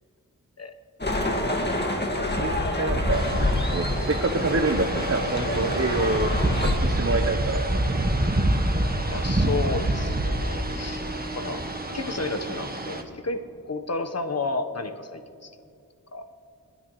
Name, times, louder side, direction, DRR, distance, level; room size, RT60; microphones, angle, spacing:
sound 1, 1.0-6.8, left 1 dB, 30° left, 2.1 m, -26 dB
voice 1, 1.4-1.8 2.2-6.3 6.8-7.7, right 2 dB, 45° right, 5 dB, 1.1 m, -27 dB
sound 2, 3.1-13.0, right 1 dB, 25° right, 1.7 m, -27 dB
voice 2, 9.1-11.6 11.9-15.5 16.1-16.3, left 3 dB, 50° left, 8 dB, 1.2 m, -32 dB
30.0 x 10.0 x 3.2 m, 2.6 s
cardioid pair, 40°, 34 cm